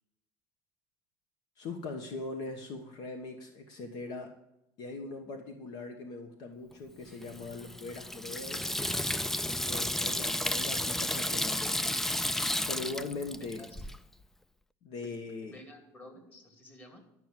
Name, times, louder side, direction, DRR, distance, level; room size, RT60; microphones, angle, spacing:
voice 1, 1.6-4.3 4.8-8.7 9.7-11.9 12.7-13.6 14.8-15.5, left 3 dB, 55° left, 5 dB, 1.3 m, -41 dB
Water tap faucet / Sink (filling or washing), 7.2-14.0, left 1 dB, 5° left, 0.3 m, -32 dB
voice 2, 13.6-13.9 15.0-17.0, left 1 dB, 25° left, 4 dB, 2.4 m, -52 dB
11.5 x 6.0 x 7.5 m, 0.86 s
cardioid pair, 140°, 8 cm